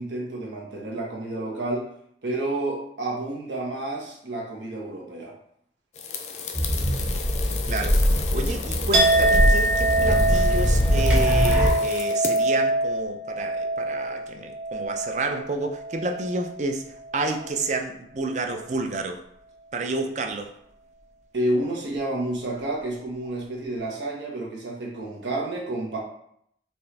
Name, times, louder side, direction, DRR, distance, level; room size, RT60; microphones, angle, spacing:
voice 1, 0.0-1.9 2.2-5.3 21.3-26.0, right 1 dB, 85° right, -2 dB, 1.2 m, -30 dB
sound 1, 5.9-12.5, left 5 dB, 40° left, 0.4 m, -34 dB
sound 2, 6.5-11.7, equal, 5° right, 0.8 m, -22 dB
voice 2, 7.7-16.9 17.1-19.2 19.7-20.5, right 2 dB, 40° right, 5 dB, 0.4 m, -30 dB
Chink clink, 8.9-16.6 17.0-17.6, right 1 dB, 60° right, 1.2 m, -24 dB
4.3 x 3.1 x 3.3 m, 0.71 s
head